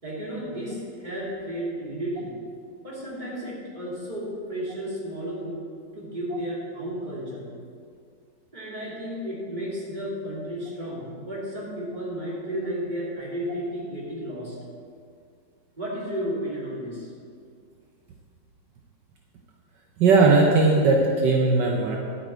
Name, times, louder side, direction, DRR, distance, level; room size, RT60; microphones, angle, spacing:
voice 1, 0.0-2.3 2.8-5.6 5.9-7.5 8.5-14.6 15.8-17.1, equal, 25° right, -5 dB, 2.7 m, -33 dB
voice 2, 20.0-22.0, right 3 dB, 70° right, 0 dB, 1.5 m, -18 dB
11.5 x 8.8 x 4.5 m, 2.3 s
omnidirectional pair, 2.0 m